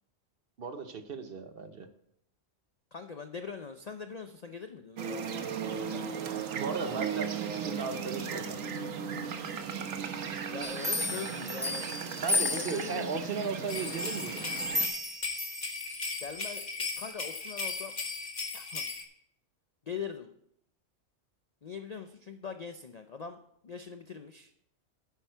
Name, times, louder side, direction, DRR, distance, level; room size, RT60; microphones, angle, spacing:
voice 1, 0.6-1.9 6.5-8.6 12.2-14.4, right 4 dB, 50° right, 9 dB, 0.9 m, -36 dB
voice 2, 2.9-6.0 10.5-11.9 12.3-13.1 16.2-17.9 18.5-18.8 19.9-20.3 21.6-24.5, left 6 dB, 50° left, 7 dB, 0.5 m, -42 dB
sound 1, 5.0-14.9, right 7 dB, 90° right, 1.3 m, -36 dB
sound 2, 10.6-13.2 13.7-16.1 16.6-16.7, left 2 dB, 5° right, 1.1 m, -34 dB
sound 3, 13.7-19.0, left 4 dB, 35° left, 1.3 m, -37 dB
9.3 x 9.1 x 4.5 m, 0.72 s
omnidirectional pair, 1.3 m